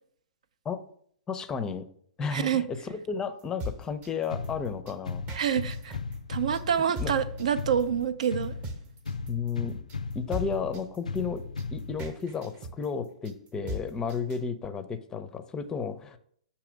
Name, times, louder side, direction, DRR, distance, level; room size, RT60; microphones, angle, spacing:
voice 1, 1.3-1.9 2.2-5.2 7.0-7.1 9.3-9.8 10.1-11.4 11.7-16.2, left 5 dB, 15° left, 0.5 m, -33 dB
voice 2, 2.3-2.6 5.4-6.0 6.3-8.5, right 8 dB, 65° right, 0.4 m, -27 dB
sound 1, 3.4-14.4, equal, 30° right, 0.8 m, -39 dB
sound 2, 4.3-12.3, left 4 dB, 85° left, 0.4 m, -37 dB
6.8 x 2.8 x 5.0 m
figure-of-eight pair, 115°, 4 cm